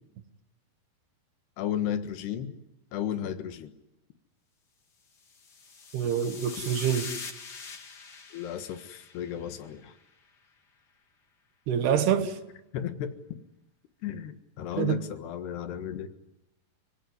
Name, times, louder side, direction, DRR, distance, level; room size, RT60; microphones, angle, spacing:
voice 1, 1.6-2.5 2.9-3.7 8.3-9.9 12.7-13.1 14.0-16.1, left 9 dB, 85° left, 3.6 m, -34 dB
sound 1, 5.3-9.8, left 5 dB, 40° left, 1.7 m, -43 dB
voice 2, 5.9-7.1 11.7-12.4 14.8-15.0, right 8 dB, 80° right, 3.5 m, -26 dB
29.5 x 17.5 x 9.7 m
omnidirectional pair, 4.6 m